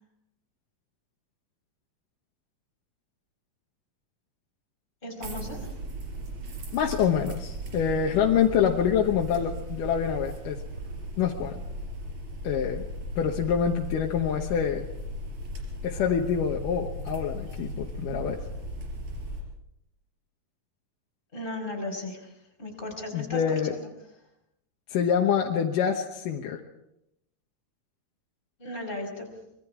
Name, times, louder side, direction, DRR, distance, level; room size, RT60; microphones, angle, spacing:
voice 1, 5.0-5.7 21.3-22.3 22.6-23.9 28.6-29.3, left 1 dB, 15° left, 1 dB, 4.9 m, -36 dB
sound 1, 5.2-19.4, equal, 55° right, 5.0 m, -37 dB
voice 2, 6.7-10.6 11.2-11.6 12.4-12.8 13.2-14.8 15.8-18.4 23.1-23.7 24.9-26.6, left 8 dB, 75° left, 1 dB, 2.7 m, -26 dB
25.0 x 21.5 x 4.8 m, 0.83 s
omnidirectional pair, 4.0 m